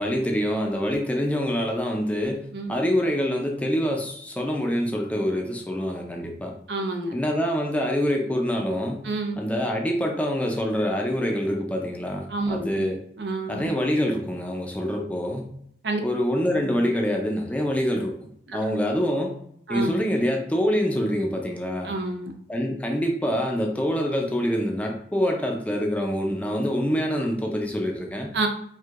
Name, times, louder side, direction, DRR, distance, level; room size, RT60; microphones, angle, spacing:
voice 1, 0.0-6.5 7.1-9.1 9.4-13.0 13.5-15.5 16.0-18.1 18.5-19.3 19.7-21.9 22.5-28.4, equal, 10° left, 1 dB, 0.4 m, -25 dB
voice 2, 6.7-7.1 9.0-9.4 12.3-12.9 13.2-13.7 15.8-16.0 16.5-16.6 18.5-18.6 19.7-19.9 21.8-22.3 28.3-28.5, right 2 dB, 65° right, 4 dB, 0.6 m, -28 dB
4.5 x 2.6 x 2.4 m, 0.68 s
head